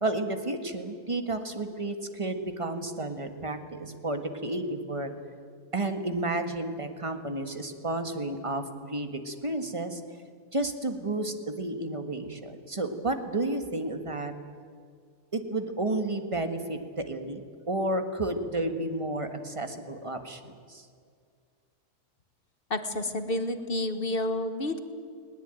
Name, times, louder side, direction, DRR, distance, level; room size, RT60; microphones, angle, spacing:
voice 1, 0.0-5.1 5.7-10.0 10.5-14.3 15.3-17.4 17.7-20.4 20.7-20.8, right 2 dB, 20° right, 7 dB, 1.6 m, -31 dB
voice 2, 22.7-24.8, left 1 dB, 40° left, 9 dB, 1.3 m, -30 dB
20.0 x 19.5 x 9.1 m, 2.1 s
omnidirectional pair, 1.7 m